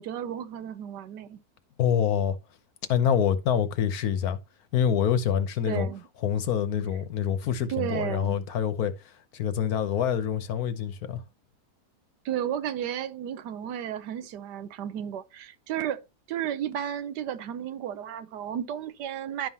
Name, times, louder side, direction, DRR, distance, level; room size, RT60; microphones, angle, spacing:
voice 1, 0.0-1.4 5.6-6.1 7.7-8.4 12.2-19.5, right 10 dB, 85° right, 1.4 m, -33 dB
voice 2, 1.8-2.4 2.9-4.4 4.7-5.9 6.2-8.9 9.3-11.2, left 8 dB, 65° left, 1.3 m, -26 dB
11.5 x 5.5 x 2.9 m
omnidirectional pair, 1.7 m